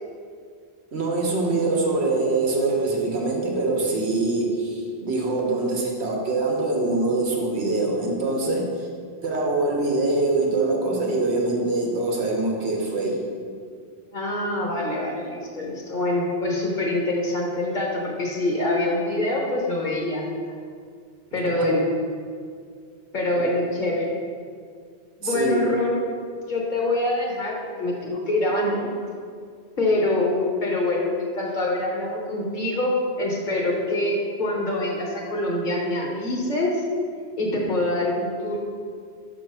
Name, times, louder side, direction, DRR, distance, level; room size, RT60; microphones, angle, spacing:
voice 1, 0.9-8.9 9.2-13.3 21.5-21.7 25.2-25.6, right 2 dB, 80° right, -1 dB, 1.2 m, -24 dB
voice 2, 14.1-20.3 21.3-21.9 23.1-24.1 25.2-26.0 26.5-28.9 29.8-36.8 37.4-38.6, left 2 dB, 50° left, -2 dB, 1.0 m, -25 dB
5.8 x 2.9 x 5.4 m, 2.1 s
omnidirectional pair, 1.1 m